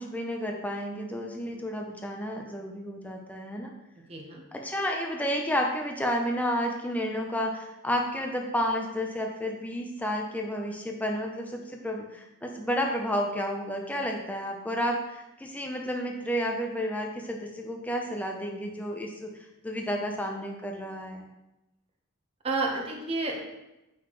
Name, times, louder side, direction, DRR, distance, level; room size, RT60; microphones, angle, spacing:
voice 1, 0.0-3.7 4.5-19.3 19.6-21.3, equal, 10° left, 1 dB, 0.6 m, -31 dB
voice 2, 4.1-4.4 22.4-23.4, right 3 dB, 30° right, 0 dB, 1.1 m, -30 dB
8.0 x 6.0 x 3.1 m, 0.96 s
head